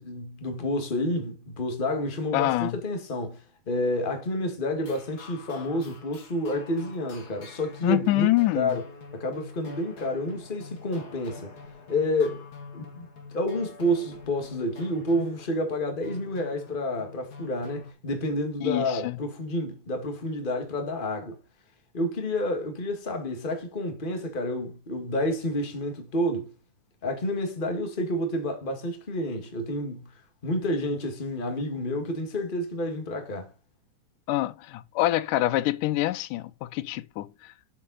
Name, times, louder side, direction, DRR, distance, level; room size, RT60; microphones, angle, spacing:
voice 1, 0.0-3.4 3.7-8.3 8.5-8.8 9.1-11.5 11.9-12.4 12.7-13.1 13.3-21.4 21.9-26.5 27.0-30.1 30.4-33.5, left 1 dB, 20° left, 1.6 m, -29 dB
voice 2, 2.3-2.8 7.8-8.8 18.6-19.2 34.3-37.5, left 16 dB, 90° left, 2.2 m, -26 dB
sound 1, 4.8-17.9, left 4 dB, 35° left, 2.0 m, -45 dB
7.4 x 7.2 x 4.1 m
omnidirectional pair, 3.6 m